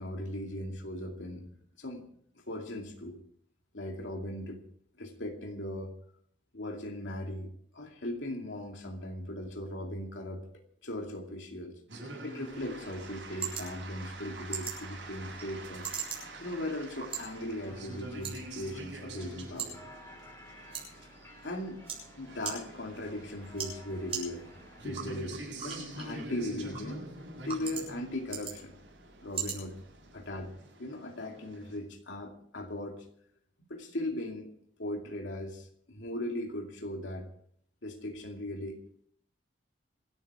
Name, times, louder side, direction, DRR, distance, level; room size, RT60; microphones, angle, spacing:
voice 1, 0.0-1.5 1.8-2.1 2.3-3.2 3.7-4.6 5.0-5.9 6.5-10.4 10.8-11.7 12.2-15.9 16.4-19.8 21.0-21.1 21.4-21.8 22.2-24.5 24.8-27.0 27.4-28.8 29.2-29.8 30.1-30.5 30.8-33.1 33.7-34.5 34.8-37.3 37.8-38.8, left 1 dB, 80° left, 2 dB, 2.4 m, -38 dB
sound 1, 11.9-25.2, left 1 dB, 15° left, 3.6 m, -56 dB
sound 2, 11.9-31.8, right 2 dB, 70° right, 7.8 m, -46 dB
sound 3, 12.5-30.5, right 7 dB, 30° right, 7.1 m, -44 dB
26.5 x 9.1 x 4.8 m, 0.64 s
head